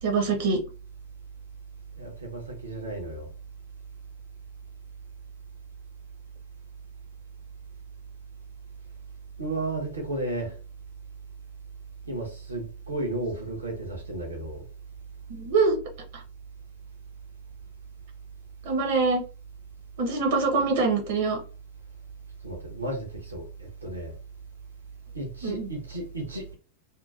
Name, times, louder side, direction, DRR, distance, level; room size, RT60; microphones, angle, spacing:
voice 1, 0.0-0.6 15.3-15.8 16.1-16.2 18.6-19.2 20.0-21.4 25.4-25.7, right 4 dB, 50° right, 0.9 m, -24 dB
voice 2, 2.0-3.3 9.4-10.5 12.0-14.6 22.4-24.1 25.1-26.5, right 2 dB, 75° right, 1.0 m, -33 dB
2.8 x 2.5 x 2.4 m
figure-of-eight pair, 90°, 0 cm